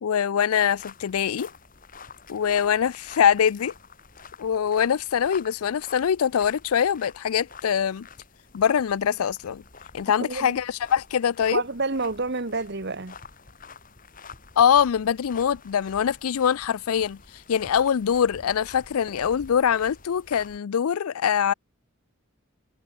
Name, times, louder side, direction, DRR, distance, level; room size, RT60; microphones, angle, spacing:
voice 1, 0.0-1.5 2.3-3.7 4.4-8.1 8.5-9.6 9.9-11.6 14.6-17.2 17.5-21.5, left 8 dB, 85° left, 0.4 m, -23 dB
sound 1, 0.7-20.6, left 5 dB, 40° left, 2.7 m, -47 dB
voice 2, 10.2-10.6 11.5-13.2, right 3 dB, 50° right, 1.5 m, -29 dB
head